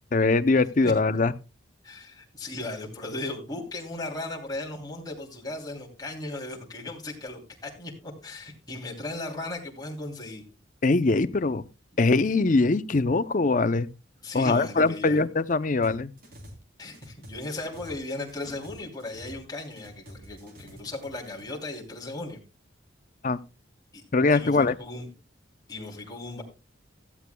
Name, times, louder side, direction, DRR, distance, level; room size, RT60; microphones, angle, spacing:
voice 1, 0.1-1.3 10.8-11.6 12.0-13.9 14.3-16.1 23.2-23.4 24.1-24.7, left 3 dB, 40° left, 0.6 m, -22 dB
voice 2, 1.8-10.4 14.2-15.2 16.8-22.4 23.9-24.0 24.3-25.1 25.7-26.4, left 2 dB, 20° left, 3.0 m, -37 dB
sound 1, 15.8-16.6 16.9-19.5 19.7-21.4, equal, 50° right, 3.4 m, -47 dB
16.5 x 14.0 x 2.2 m
head